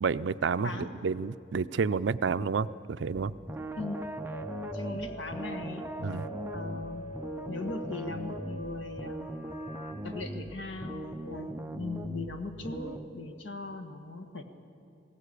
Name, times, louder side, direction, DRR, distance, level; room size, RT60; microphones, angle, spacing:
voice 1, 0.0-3.3 6.0-6.2, right 5 dB, 65° right, 13 dB, 0.5 m, -30 dB
sound 1, 3.1-13.1, right 1 dB, 10° right, 0.6 m, -40 dB
voice 2, 3.8-4.1 4.7-5.8 6.5-7.1 7.5-9.3 10.0-14.4, left 3 dB, 75° left, 6 dB, 1.6 m, -39 dB
sound 2, 3.8-9.9, equal, 50° left, 4.0 m, -43 dB
20.5 x 17.0 x 8.4 m, 2.5 s
head